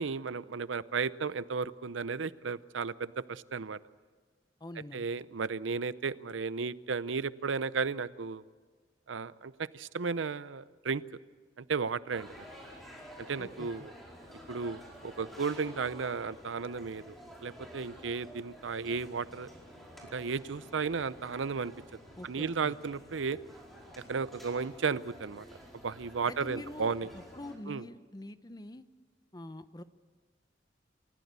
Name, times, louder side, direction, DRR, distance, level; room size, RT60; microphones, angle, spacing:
voice 1, 0.0-3.8 4.9-8.4 9.1-11.0 11.6-12.3 13.3-13.9 14.5-17.1 17.4-19.5 20.1-21.7 22.2-23.4 24.1-25.5 25.8-27.1 27.7-27.8, right 5 dB, 85° right, 17 dB, 0.6 m, -34 dB
voice 2, 4.6-5.1 13.4-13.9 22.2-22.8 26.3-28.9 29.3-29.8, left 1 dB, 20° left, 12 dB, 0.8 m, -45 dB
sound 1, 12.1-27.6, equal, ahead, 4.7 m, -51 dB
29.0 x 15.0 x 8.2 m, 1.5 s
head